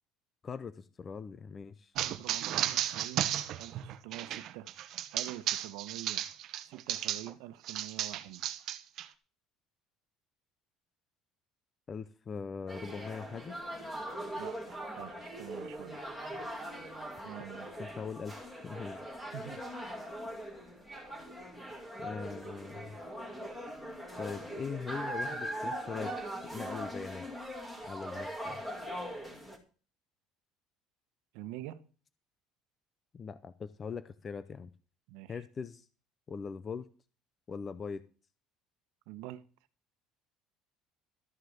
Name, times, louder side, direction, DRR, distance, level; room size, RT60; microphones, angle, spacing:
voice 1, 0.4-1.9 11.9-13.6 17.8-18.4 18.6-19.2 21.5-21.6 22.0-23.0 24.2-26.1 26.4-27.2 27.8-28.6 33.1-34.7 35.3-35.9 36.3-36.9 37.5-38.0, left 5 dB, 20° left, 0.5 m, -41 dB
voice 2, 1.9-3.3 3.6-4.7 5.1-6.3 6.6-8.5 14.4-16.0 17.2-17.7 19.3-20.0 31.3-31.8 35.1-35.4 39.1-39.4, right 15 dB, 75° right, 1.1 m, -46 dB
sound 1, 2.0-7.3 7.7-9.1, right 12 dB, 40° right, 0.9 m, -34 dB
sound 2, 12.7-29.6, equal, 5° left, 2.3 m, -41 dB
13.5 x 6.5 x 7.3 m
cardioid pair, 180°, 0 cm